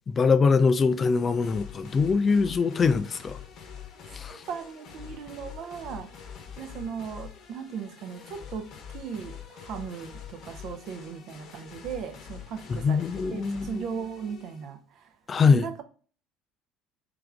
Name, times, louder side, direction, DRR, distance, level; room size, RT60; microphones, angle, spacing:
voice 1, 0.1-3.4 4.1-4.4 12.7-13.8 15.3-15.7, left 5 dB, 30° left, 0.3 m, -23 dB
sound 1, 1.0-14.7, left 8 dB, 50° left, 0.9 m, -45 dB
voice 2, 4.3-13.0 13.3-15.2 15.5-15.8, right 7 dB, 50° right, 0.6 m, -38 dB
3.5 x 3.3 x 3.6 m
figure-of-eight pair, 60°, 0 cm